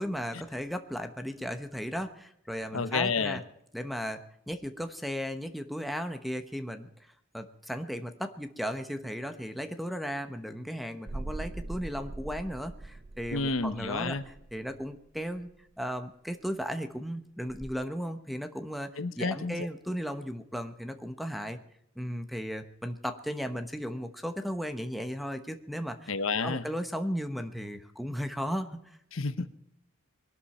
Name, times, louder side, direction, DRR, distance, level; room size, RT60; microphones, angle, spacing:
voice 1, 0.0-3.4 3.7-6.9 7.3-14.2 14.5-15.5 15.8-21.6 22.0-26.1 26.4-29.0, equal, ahead, 8 dB, 1.1 m, -35 dB
voice 2, 2.7-3.4 13.3-14.2 19.0-19.7 26.1-26.7 29.1-29.5, left 4 dB, 70° left, 12 dB, 1.0 m, -30 dB
sound 1, 11.1-15.5 17.5-17.7, right 2 dB, 35° right, 0.7 m, -42 dB
22.0 x 12.5 x 4.3 m, 0.75 s
head